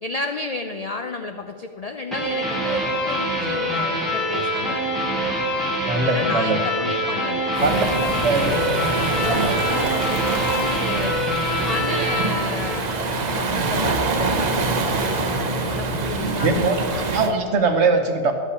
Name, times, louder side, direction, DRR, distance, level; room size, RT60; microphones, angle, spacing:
voice 1, 0.0-5.3 6.0-11.1 11.6-17.1, left 3 dB, 75° left, 6 dB, 0.3 m, -33 dB
sound 1, 2.1-13.4, equal, ahead, 1.9 m, -25 dB
voice 2, 5.8-6.6 7.6-7.8 8.2-8.8 9.2-9.5 16.1-16.8 17.1-18.3, right 4 dB, 60° right, 6 dB, 1.2 m, -21 dB
Waves surf, 7.5-17.3, right 3 dB, 40° right, 0.7 m, -25 dB
11.5 x 5.5 x 8.3 m, 2.4 s
omnidirectional pair, 1.4 m